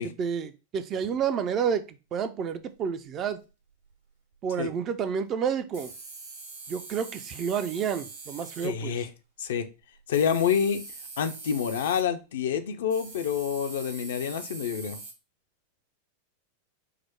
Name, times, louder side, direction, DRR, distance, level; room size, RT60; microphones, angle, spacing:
voice 1, 0.0-3.4 4.4-5.9 6.7-9.0, right 7 dB, 30° right, 0.4 m, -30 dB
sound 1, 2.8-2.9 3.3-3.4 3.9-4.0 4.3-4.4 5.7-8.7 10.0-12.0 12.9-15.1, right 3 dB, 65° right, 1.0 m, -43 dB
voice 2, 8.6-9.1 9.4-9.7 10.1-10.8 11.2-15.0, left 7 dB, 60° left, 0.5 m, -27 dB
4.8 x 2.0 x 4.5 m
figure-of-eight pair, 90°, 0 cm